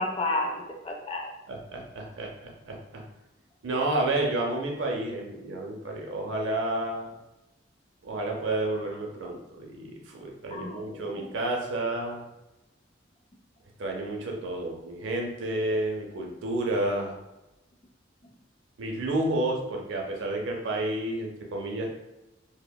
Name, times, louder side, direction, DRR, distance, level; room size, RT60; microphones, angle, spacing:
voice 1, 0.0-1.3 10.5-11.3, left 2 dB, 30° left, 0 dB, 0.3 m, -32 dB
voice 2, 1.5-3.0 3.6-7.1 8.0-12.3 13.8-17.2 18.8-21.9, right 2 dB, 80° right, 0 dB, 0.5 m, -30 dB
2.9 x 2.0 x 2.2 m, 0.96 s
head